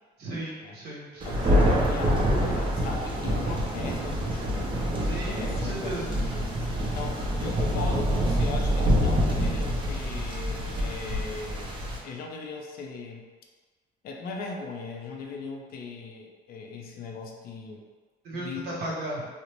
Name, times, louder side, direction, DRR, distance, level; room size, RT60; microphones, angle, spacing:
voice 1, 0.2-1.3 5.0-6.1 18.2-19.3, right 1 dB, 80° right, -5 dB, 0.9 m, -35 dB
voice 2, 1.2-4.7 5.3-6.6 6.9-11.7 12.0-13.3 14.0-17.8 18.3-18.7, left 3 dB, 60° left, 1 dB, 0.5 m, -38 dB
Thunder, 1.2-12.0, equal, 30° right, 0.5 m, -26 dB
2.6 x 2.0 x 3.0 m, 1.4 s
cardioid pair, 110°, 17 cm